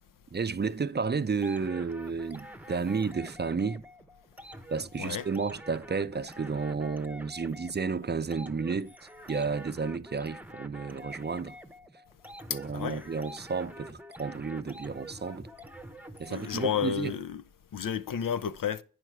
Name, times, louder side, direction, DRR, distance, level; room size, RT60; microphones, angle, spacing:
voice 1, 0.3-3.8 4.7-8.9 9.3-11.6 12.5-15.5 16.2-17.2, right 5 dB, 35° right, 0.5 m, -32 dB
sound 1, 1.4-17.2, equal, 5° right, 0.8 m, -47 dB
voice 2, 12.5-13.0 16.3-17.4 17.7-18.8, left 8 dB, 80° left, 0.6 m, -31 dB
9.2 x 6.1 x 4.5 m
cardioid pair, 40°, 32 cm